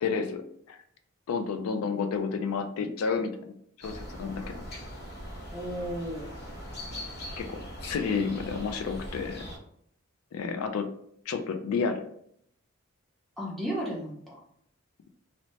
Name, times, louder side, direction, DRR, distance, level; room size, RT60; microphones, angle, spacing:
voice 1, 0.0-0.8 1.3-3.6 3.8-4.7 7.4-9.5 10.3-10.9 11.3-12.1, left 5 dB, 80° left, 7 dB, 0.3 m, -31 dB
sound 1, 3.8-9.6, equal, 45° left, 0.7 m, -41 dB
voice 2, 5.5-6.3 10.4-10.6 13.4-14.4, equal, ahead, -5 dB, 0.7 m, -34 dB
2.7 x 2.0 x 3.1 m, 0.68 s
head